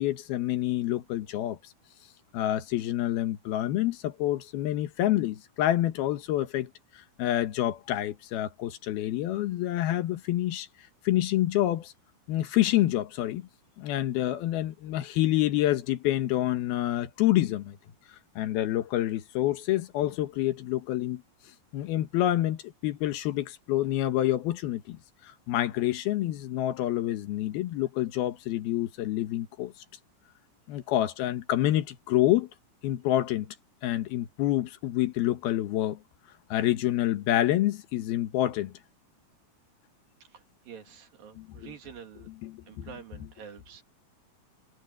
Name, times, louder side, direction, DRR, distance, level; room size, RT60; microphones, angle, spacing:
voice 1, 0.0-1.6 2.3-6.7 6.9-10.7 11.0-11.9 12.3-13.5 13.8-17.8 18.4-21.2 21.7-25.0 25.5-29.7 30.7-32.5 32.8-33.5 33.8-36.0 36.5-38.7 41.4-41.7 42.4-42.9, left 14 dB, 80° left, 3.2 m, -27 dB
voice 2, 40.2-42.3 42.7-43.8, right 7 dB, 70° right, 4.2 m, -47 dB
omnidirectional pair, 4.3 m